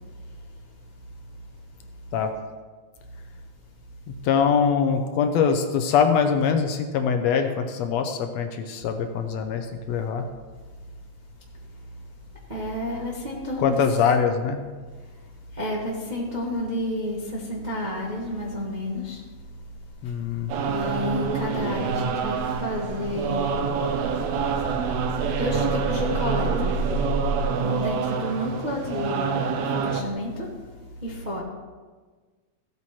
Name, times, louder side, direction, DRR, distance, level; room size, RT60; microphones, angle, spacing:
voice 1, 0.0-1.5 2.0-2.1 11.6-11.9 12.3-13.8 15.0-19.2 19.5-19.6 20.0-23.9 24.3-24.5 25.1-26.8 27.3-31.4, left 1 dB, 35° right, -4 dB, 0.7 m, -31 dB
voice 2, 4.2-10.3 13.6-14.6 20.0-20.5, left 6 dB, 75° left, 6 dB, 1.8 m, -23 dB
sound 1, 19.5-27.5, right 2 dB, 10° left, 2.6 m, -32 dB
sound 2, 20.5-30.0, right 6 dB, 75° right, 1.9 m, -27 dB
15.5 x 8.5 x 3.1 m, 1.4 s
omnidirectional pair, 3.3 m